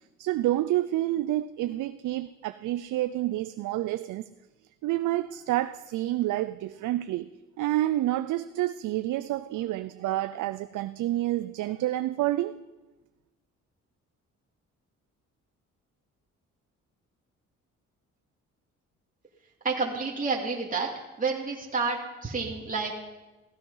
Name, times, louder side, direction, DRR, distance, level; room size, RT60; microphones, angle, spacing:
voice 1, 0.2-4.2 4.8-7.3 7.6-12.6, right 15 dB, 80° right, 0.6 m, -28 dB
voice 2, 19.6-20.9 21.2-22.9, right 4 dB, 25° right, 2.6 m, -29 dB
16.0 x 15.0 x 5.6 m
cardioid pair, 90°, 30 cm